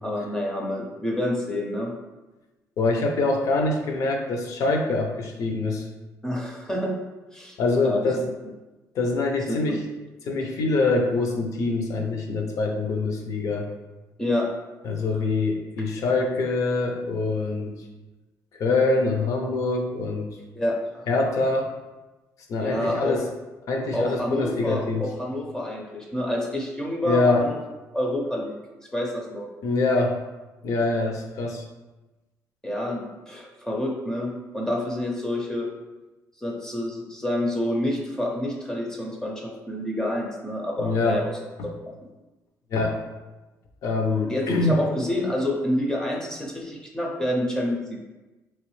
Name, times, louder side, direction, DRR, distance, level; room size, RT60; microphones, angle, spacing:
voice 1, 0.0-1.9 6.2-7.0 7.3-7.6 7.8-8.1 14.2-14.5 20.4-21.1 22.6-23.2 23.9-27.6 27.9-28.6 28.9-29.5 32.6-35.7 36.4-41.3 41.6-41.7 44.3-48.0, left 1 dB, 10° left, -1 dB, 0.5 m, -28 dB
voice 2, 2.8-5.8 7.6-8.2 8.9-9.8 10.3-13.7 14.8-17.8 18.6-20.4 21.1-21.7 22.5-23.2 23.7-25.0 27.0-27.5 29.6-30.2 30.6-31.6 40.8-41.2 41.6-41.7 42.7-42.9 43.8-44.8, left 3 dB, 55° left, 2 dB, 0.5 m, -24 dB
3.3 x 3.0 x 3.1 m, 1.1 s
cardioid pair, 155°, 6 cm